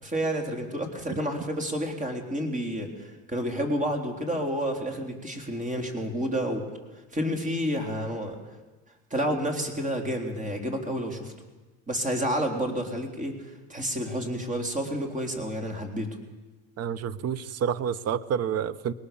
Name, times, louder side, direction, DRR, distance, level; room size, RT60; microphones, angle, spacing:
voice 1, 0.0-6.6 7.1-8.4 9.1-11.3 11.9-13.3 13.7-16.1, equal, 20° right, 3 dB, 3.9 m, -30 dB
voice 2, 16.8-18.9, right 8 dB, 45° right, 17 dB, 1.0 m, -29 dB
21.0 x 19.0 x 7.1 m, 1.2 s
supercardioid pair, 100°, 34 cm